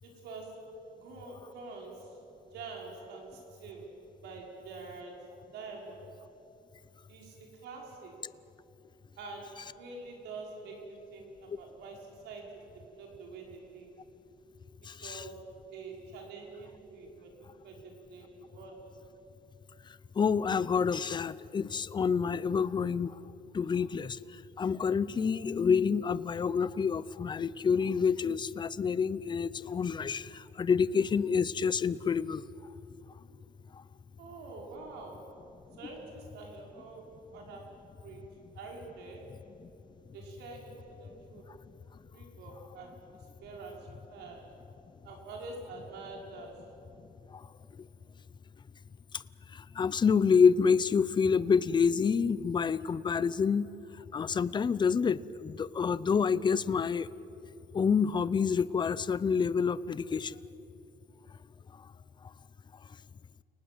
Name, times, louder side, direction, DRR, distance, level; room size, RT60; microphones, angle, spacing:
voice 1, 0.0-2.2 2.5-3.9 4.2-6.1 7.1-8.2 9.2-13.9 15.0-18.9 34.2-35.4 35.8-38.3 38.5-39.3 40.1-41.5 42.1-44.5 45.0-46.7, right 3 dB, 80° right, 0 dB, 5.8 m, -46 dB
voice 2, 14.8-15.2 20.2-23.2 23.5-32.4 47.3-47.4 49.1-49.2 49.5-53.7 54.1-57.1 57.7-60.4, left 6 dB, 25° left, 18 dB, 0.7 m, -28 dB
29.5 x 19.0 x 8.0 m, 3.0 s
cardioid pair, 110°, 17 cm